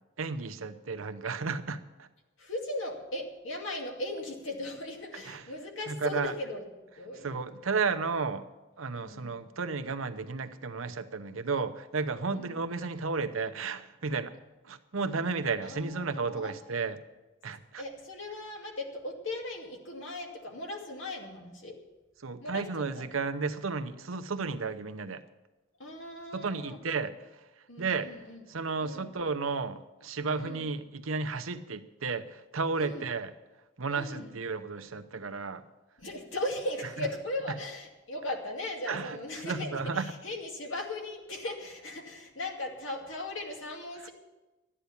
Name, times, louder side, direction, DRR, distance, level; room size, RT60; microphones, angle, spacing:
voice 1, 0.2-2.1 5.3-5.4 5.9-6.3 7.2-8.5 8.8-14.3 14.6-17.0 17.4-17.8 22.2-25.2 26.3-27.1 27.8-28.1 28.5-33.3 33.8-35.6 38.9-39.2 39.4-40.1 44.0-44.1, right 4 dB, 90° right, 10 dB, 0.9 m, -33 dB
voice 2, 2.4-6.7 7.0-7.5 9.0-9.4 12.3-12.6 15.6-16.5 17.8-21.8 22.4-22.7 23.0-23.1 25.8-26.8 27.7-28.4 28.8-29.1 30.4-30.6 32.8-33.1 33.9-34.3 36.0-44.1, left 1 dB, 75° left, 1 dB, 2.4 m, -38 dB
13.0 x 9.9 x 7.1 m, 1.1 s
head